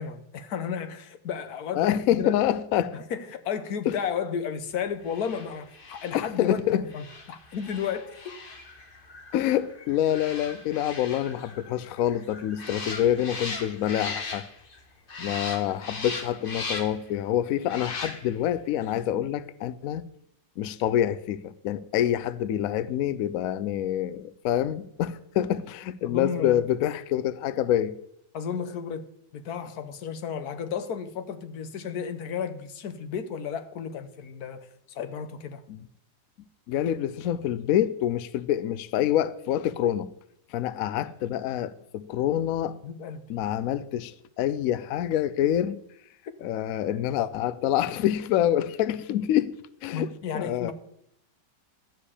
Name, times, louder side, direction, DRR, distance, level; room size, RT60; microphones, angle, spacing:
voice 1, 0.0-2.4 2.9-8.2 26.0-26.6 28.3-29.1 29.3-35.6 42.8-43.2 49.9-50.7, left 7 dB, 60° left, 1.3 m, -33 dB
voice 2, 1.7-3.0 3.9-4.0 6.1-6.8 9.3-14.5 15.2-20.0 20.6-27.9 35.7-35.8 36.7-40.1 40.5-42.8 43.3-45.8 46.4-49.5 49.8-50.7, left 11 dB, 85° left, 0.7 m, -26 dB
sound 1, 5.0-14.8 15.1-17.1 17.6-18.5 18.8-19.0, left 3 dB, 30° left, 1.3 m, -39 dB
13.0 x 5.0 x 8.3 m
omnidirectional pair, 2.1 m